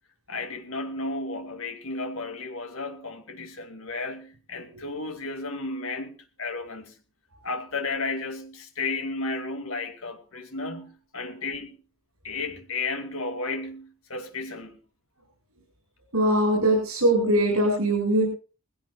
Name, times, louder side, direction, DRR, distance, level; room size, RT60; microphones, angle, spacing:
voice 1, 0.3-6.9 7.4-11.8 12.2-14.8, left 3 dB, 65° left, 2.4 m, -33 dB
voice 2, 16.1-18.3, right 1 dB, 80° right, 7.5 m, -21 dB
21.0 x 16.5 x 2.4 m
head